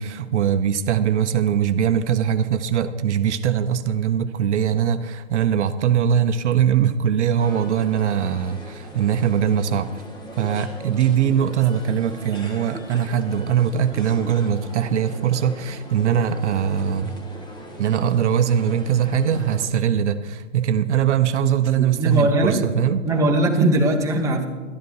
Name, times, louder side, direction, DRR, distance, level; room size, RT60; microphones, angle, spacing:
voice 1, 0.0-9.9 10.4-17.2 17.8-23.0, right 8 dB, 65° right, 10 dB, 0.8 m, -21 dB
sound 1, 7.4-19.7, equal, 10° left, 1.3 m, -40 dB
voice 2, 21.8-22.6 23.0-24.4, right 1 dB, 10° right, 1 dB, 1.0 m, -20 dB
12.0 x 10.0 x 4.7 m, 1.5 s
hypercardioid pair, 130°, 38 cm